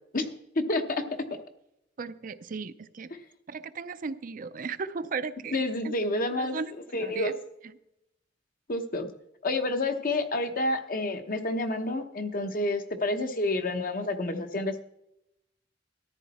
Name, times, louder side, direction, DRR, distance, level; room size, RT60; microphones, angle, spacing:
voice 1, 0.6-1.0 1.3-1.4 5.5-6.6 6.9-7.3 8.7-9.1 9.4-14.8, left 2 dB, 50° left, 7 dB, 1.0 m, -29 dB
voice 2, 2.0-3.1 3.5-5.9 6.4-6.7 7.0-7.3, right 5 dB, 50° right, 12 dB, 0.5 m, -36 dB
14.0 x 10.5 x 4.2 m, 0.85 s
head